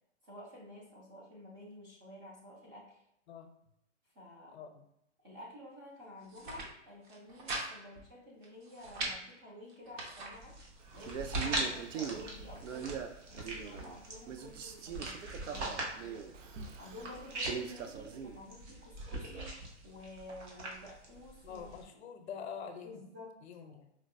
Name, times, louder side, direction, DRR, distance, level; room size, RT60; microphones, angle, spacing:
voice 1, 0.2-3.0 4.1-4.6 5.2-10.5 10.9-12.9 13.3-16.2 16.8-19.5 19.8-21.7 22.8-23.3 23.7-23.8, left 1 dB, 20° right, -5 dB, 0.4 m, -51 dB
voice 2, 4.5-4.9 21.4-23.0 23.4-23.9, left 7 dB, 60° left, 6 dB, 0.6 m, -45 dB
sound 1, 6.2-6.7 7.0-7.7 8.0-8.1 8.4-9.2 9.7-10.3 11.0-11.6 12.2-13.0, right 3 dB, 40° right, 0.8 m, -41 dB
sound 2, 10.3-21.8, right 1 dB, 70° right, 1.2 m, -42 dB
Male speech man speaking, 11.0-14.0 14.3-18.4, right 7 dB, 85° right, 0.5 m, -42 dB
4.4 x 2.0 x 2.5 m, 0.78 s
hypercardioid pair, 155°, 36 cm